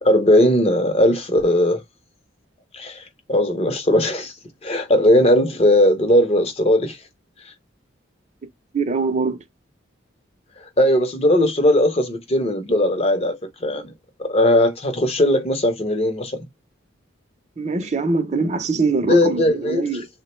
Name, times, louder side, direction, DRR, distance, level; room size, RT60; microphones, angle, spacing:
voice 1, 0.0-1.8 2.7-3.0 3.3-4.3 4.6-7.0 10.8-13.9 14.2-16.4 19.1-19.9, left 1 dB, 30° left, 0.6 m, -18 dB
voice 2, 8.7-9.4 17.6-20.1, right 4 dB, 35° right, 0.5 m, -23 dB
3.5 x 2.1 x 3.0 m
head